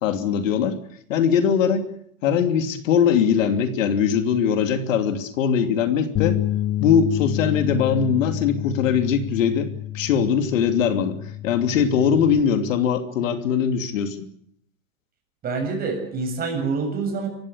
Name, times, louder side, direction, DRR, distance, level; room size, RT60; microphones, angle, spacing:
voice 1, 0.0-0.8 1.1-1.8 2.2-6.4 6.8-11.2 11.4-14.3, left 7 dB, 75° left, 8 dB, 2.9 m, -21 dB
sound 1, 6.2-12.4, left 13 dB, 25° left, 1.3 m, -29 dB
voice 2, 15.4-17.3, right 4 dB, 25° right, 3 dB, 7.5 m, -26 dB
27.0 x 15.5 x 8.5 m, 0.68 s
supercardioid pair, 160°, 39 cm